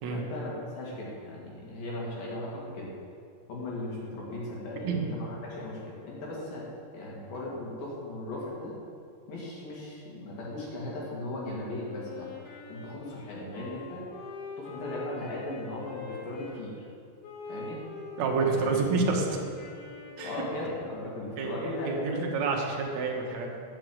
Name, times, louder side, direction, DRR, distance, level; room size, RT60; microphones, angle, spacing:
voice 1, 0.1-2.9 3.5-6.7 6.9-8.7 9.3-12.3 12.7-14.0 14.6-16.9 17.5-17.8 18.5-18.7 20.2-22.3, left 1 dB, 55° left, -4 dB, 3.7 m, -37 dB
Wind instrument woodwind instrument, 11.9-16.6 17.2-21.2, left 3 dB, 75° left, 3.9 m, -44 dB
voice 2, 18.2-19.3 20.2-20.3 21.4-23.6, right 4 dB, 75° right, -1 dB, 1.6 m, -28 dB
10.5 x 6.7 x 7.8 m, 2.3 s
omnidirectional pair, 5.2 m